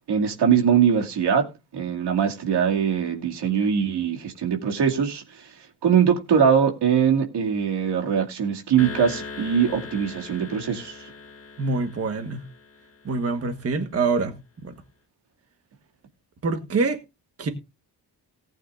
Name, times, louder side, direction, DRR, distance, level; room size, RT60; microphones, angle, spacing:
voice 1, 0.1-1.5 1.7-11.1, right 7 dB, 90° right, 2.4 m, -22 dB
sound 1, 8.8-13.3, left 4 dB, 35° left, 1.8 m, -40 dB
voice 2, 11.6-12.4 13.0-14.3 14.6-14.7 16.4-17.0 17.4-17.5, right 4 dB, 35° right, 1.4 m, -25 dB
18.5 x 8.9 x 2.5 m
wide cardioid pair, 170°, 40 cm